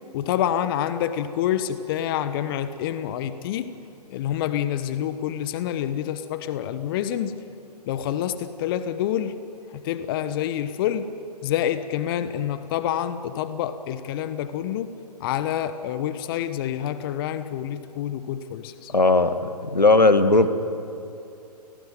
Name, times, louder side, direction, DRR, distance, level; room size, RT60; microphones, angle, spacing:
voice 1, 0.1-3.7 4.1-7.4 7.9-9.4 9.7-11.1 11.4-14.9 15.2-18.9, left 10 dB, 35° left, 12 dB, 1.1 m, -27 dB
voice 2, 18.9-19.4 19.7-20.5, left 3 dB, 90° left, 10 dB, 1.9 m, -16 dB
30.0 x 18.5 x 9.3 m, 2.7 s
figure-of-eight pair, 125°, 21 cm